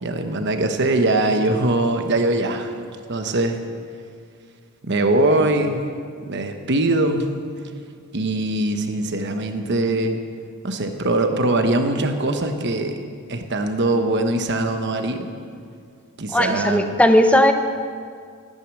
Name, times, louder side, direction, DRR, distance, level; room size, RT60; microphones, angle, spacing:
voice 1, 0.0-2.7 3.1-3.6 4.9-5.8 6.2-7.3 8.1-10.2 10.6-13.0 13.3-15.3 16.2-16.9, right 2 dB, 55° right, 6 dB, 1.1 m, -22 dB
voice 2, 16.3-17.5, left 1 dB, 5° left, 7 dB, 0.7 m, -16 dB
14.0 x 9.6 x 6.3 m, 2.1 s
head